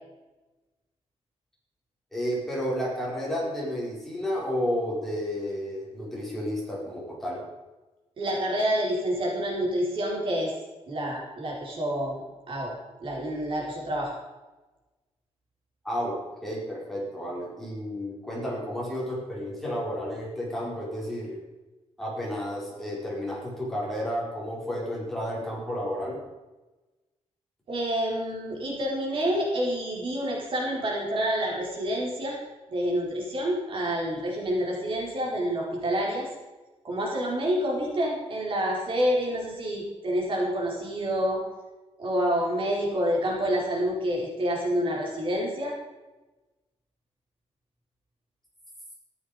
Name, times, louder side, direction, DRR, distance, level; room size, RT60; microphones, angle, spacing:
voice 1, 2.1-7.4 15.8-16.1 16.4-21.4 22.0-26.2, equal, 5° left, -5 dB, 5.0 m, -31 dB
voice 2, 8.2-10.5 10.9-12.2 12.5-14.1 27.7-32.4 32.7-36.3 36.8-41.4 42.0-45.7, equal, 50° right, -2 dB, 4.6 m, -28 dB
14.5 x 12.0 x 5.1 m, 1.1 s
wide cardioid pair, 160°, 11 cm